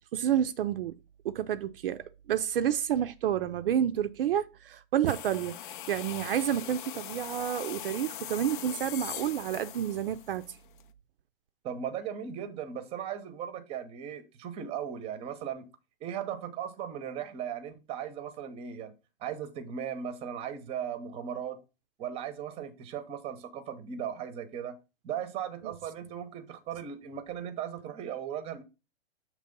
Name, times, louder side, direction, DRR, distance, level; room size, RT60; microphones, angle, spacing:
voice 1, 0.1-0.9 1.2-5.6 5.9-10.6 25.6-25.7, right 10 dB, 65° right, 0.5 m, -29 dB
sound 1, 5.1-10.8, left 11 dB, 55° left, 0.5 m, -41 dB
voice 2, 11.6-15.7 16.0-18.9 19.2-21.6 22.0-24.8 25.0-28.6, right 8 dB, 20° right, 0.7 m, -37 dB
6.7 x 3.0 x 5.2 m
hypercardioid pair, 140°, 31 cm